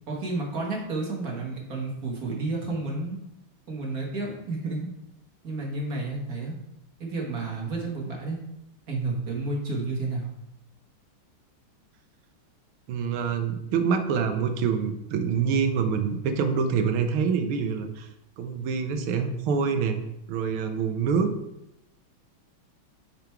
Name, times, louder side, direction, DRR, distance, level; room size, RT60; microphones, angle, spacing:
voice 1, 0.1-3.2 3.7-4.9 5.4-6.6 7.0-8.4 8.9-10.3, right 3 dB, 50° right, -1 dB, 1.7 m, -31 dB
voice 2, 12.9-18.1 18.4-20.0 20.3-21.3, right 6 dB, 85° right, 7 dB, 1.6 m, -26 dB
5.9 x 5.2 x 4.4 m, 0.86 s
omnidirectional pair, 2.3 m